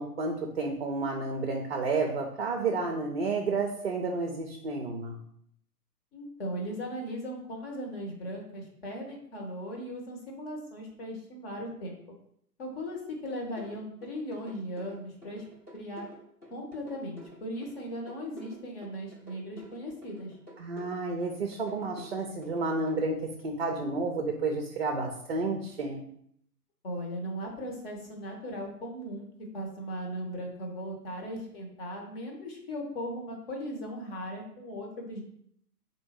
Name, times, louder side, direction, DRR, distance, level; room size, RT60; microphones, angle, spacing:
voice 1, 0.0-5.2 20.6-23.2 23.4-26.0, right 3 dB, 40° right, 1 dB, 0.5 m, -31 dB
voice 2, 6.1-12.0 12.6-15.4 15.7-16.0 16.5-20.3 26.8-29.3 29.5-35.2, equal, 35° left, 0 dB, 1.2 m, -38 dB
sound 1, 13.6-23.0, left 1 dB, 15° left, 0.8 m, -49 dB
3.5 x 2.7 x 4.4 m, 0.69 s
figure-of-eight pair, 125°, 49 cm